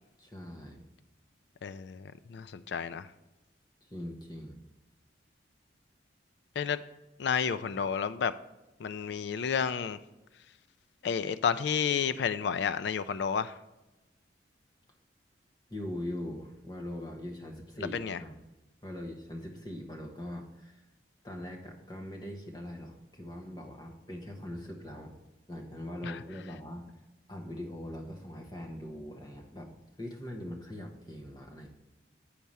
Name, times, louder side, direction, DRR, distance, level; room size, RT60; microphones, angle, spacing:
voice 1, 0.2-0.8 3.9-4.6 15.7-18.4 18.8-20.8 21.2-25.1 25.5-26.9 27.3-29.7 30.0-31.7, left 1 dB, 20° left, 0 dB, 1.1 m, -41 dB
voice 2, 1.6-3.1 6.6-6.8 7.2-8.3 8.8-10.0 11.0-13.5 17.9-18.2 26.0-26.1, left 7 dB, 65° left, 13 dB, 0.3 m, -31 dB
8.7 x 4.6 x 5.4 m, 1.0 s
head